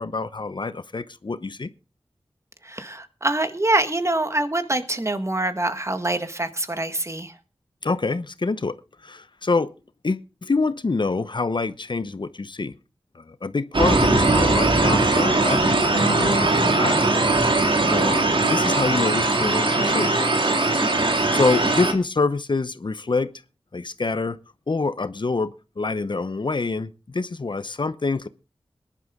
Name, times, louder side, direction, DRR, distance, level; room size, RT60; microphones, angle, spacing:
voice 1, 0.0-1.7 7.8-8.8 9.0-9.7 10.0-12.8 13.1-17.2 17.9-18.2 18.4-20.1 21.3-23.3 23.7-24.4 24.7-28.3, left 3 dB, 55° left, 0.9 m, -26 dB
voice 2, 2.6-7.4 20.8-21.1, right 2 dB, 30° right, 1.8 m, -25 dB
sound 1, 13.7-21.9, right 2 dB, 65° right, 2.5 m, -20 dB
20.5 x 11.0 x 3.7 m
wide cardioid pair, 55°, 9 cm